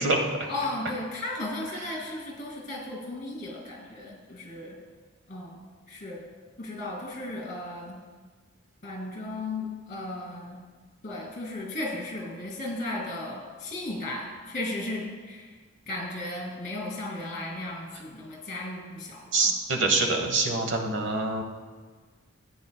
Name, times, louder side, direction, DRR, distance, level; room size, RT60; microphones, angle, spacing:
voice 1, 0.4-4.8 5.3-5.6 5.9-6.2 6.6-8.0 8.8-10.6 11.0-15.6 15.9-19.5, left 2 dB, 35° left, -3 dB, 2.3 m, -35 dB
voice 2, 19.3-21.4, right 3 dB, 60° right, 3 dB, 1.0 m, -25 dB
15.0 x 8.7 x 2.2 m, 1.4 s
head